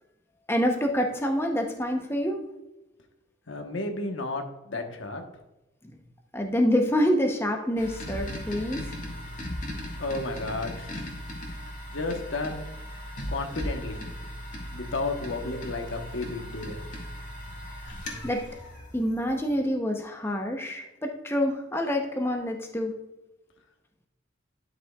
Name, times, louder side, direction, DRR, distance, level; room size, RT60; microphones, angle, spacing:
voice 1, 0.5-2.4 5.8-5.9 6.3-8.9 18.2-18.4 18.9-22.9, equal, 10° left, 3 dB, 0.7 m, -27 dB
voice 2, 3.5-5.2 10.0-10.9 11.9-12.6 13.3-14.0 14.7-16.7, left 2 dB, 80° left, 4 dB, 1.1 m, -32 dB
sound 1, 7.8-19.5, left 1 dB, 40° left, 1.9 m, -38 dB
11.0 x 6.1 x 2.3 m, 0.98 s
head